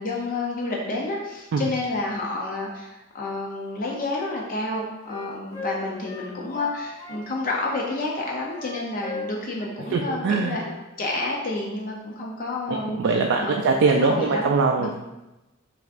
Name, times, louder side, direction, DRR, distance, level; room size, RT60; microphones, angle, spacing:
voice 1, 0.0-10.6 11.0-13.0 13.4-14.9, left 2 dB, 40° left, -1 dB, 0.5 m, -29 dB
Wind instrument woodwind instrument, 3.7-7.2 7.6-9.7 10.0-10.2 10.5-10.7 11.0-11.3, equal, 15° left, 0.8 m, -38 dB
voice 2, 9.9-10.6 12.7-14.9, right 4 dB, 60° right, 1 dB, 0.3 m, -22 dB
6.1 x 3.4 x 2.4 m, 1.0 s
head